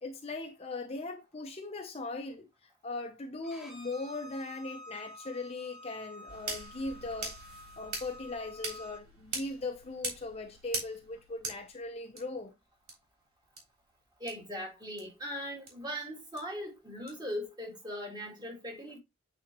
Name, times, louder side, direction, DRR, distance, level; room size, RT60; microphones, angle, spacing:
voice 1, 0.0-7.4 7.8-12.5, left 2 dB, 30° left, 0.8 m, -39 dB
Bowed string instrument, 3.4-9.0, left 1 dB, ahead, 1.3 m, -50 dB
sound 1, 6.3-12.2 12.9-13.0 13.6-13.7 14.3-14.4 15.0-15.1 15.7-15.8 16.4-16.5 17.1-17.2, right 3 dB, 85° right, 3.3 m, -41 dB
voice 2, 14.2-19.0, equal, 20° right, 2.1 m, -39 dB
8.7 x 4.2 x 3.0 m
head